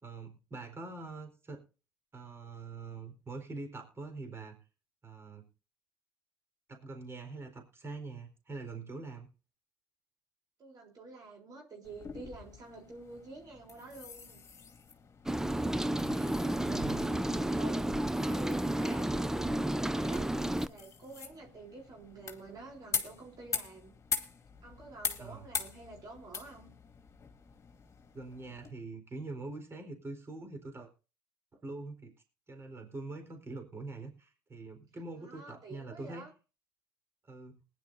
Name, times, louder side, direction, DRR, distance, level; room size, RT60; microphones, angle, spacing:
voice 1, 0.0-1.6 2.1-4.6 5.0-5.5 6.7-9.3 16.6-17.2 25.2-25.5 28.1-30.9 31.6-32.1 32.5-36.3 37.3-37.6, right 3 dB, 30° right, 5 dB, 4.1 m, -44 dB
voice 2, 10.6-14.4 16.2-20.3 20.6-23.9 24.6-26.7 35.2-36.3, right 3 dB, 45° right, 0 dB, 3.9 m, -49 dB
sound 1, 11.8-28.7, left 6 dB, 35° left, 2.3 m, -43 dB
Rain, 15.3-20.7, right 1 dB, 5° right, 0.6 m, -31 dB
20.5 x 10.5 x 2.7 m, 0.34 s
hypercardioid pair, 70°, 9 cm